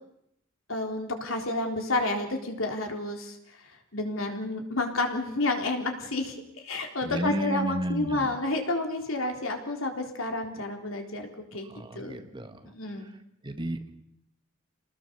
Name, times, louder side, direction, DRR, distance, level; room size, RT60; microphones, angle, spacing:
voice 1, 0.7-3.4 3.9-11.7 11.9-12.2 12.6-13.1, left 2 dB, 65° left, 3 dB, 3.9 m, -30 dB
voice 2, 7.0-8.4 11.6-13.2 13.4-13.9, right 1 dB, 20° right, 6 dB, 1.8 m, -33 dB
28.0 x 20.0 x 7.0 m, 0.77 s
head